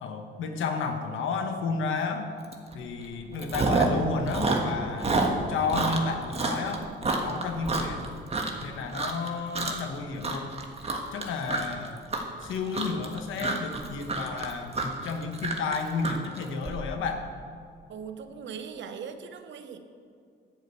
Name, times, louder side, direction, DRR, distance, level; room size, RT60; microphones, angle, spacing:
voice 1, 0.0-2.3 2.7-5.1 5.5-6.9 7.2-8.1 8.6-10.6 11.1-12.1 12.4-17.2, left 4 dB, 85° left, 5 dB, 1.2 m, -32 dB
Chewing mastication, 2.5-2.7 3.0-4.0 4.3-8.6 8.9-9.3 9.5-9.9 10.2-16.7, right 3 dB, 30° right, 1.5 m, -28 dB
voice 2, 5.4-5.7 17.9-19.8, right 6 dB, 65° right, 8 dB, 1.0 m, -40 dB
10.5 x 5.2 x 8.3 m, 2.3 s
cardioid pair, 90°, 20 cm